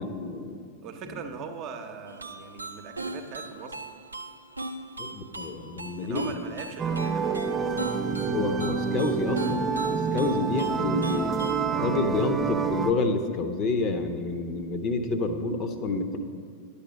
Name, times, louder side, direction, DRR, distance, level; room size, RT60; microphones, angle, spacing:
voice 1, 0.0-0.6 5.0-6.3 8.3-11.4 11.7-16.2, left 3 dB, 35° left, 8 dB, 0.8 m, -29 dB
voice 2, 0.8-3.8 6.0-7.8 10.1-10.4, right 5 dB, 40° right, 6 dB, 0.9 m, -40 dB
sound 1, 2.1-11.7, right 2 dB, 80° right, 0.5 m, -39 dB
sound 2, 6.8-12.9, right 5 dB, 20° right, 0.5 m, -28 dB
10.5 x 7.2 x 5.2 m, 2.2 s
figure-of-eight pair, 90°, 0 cm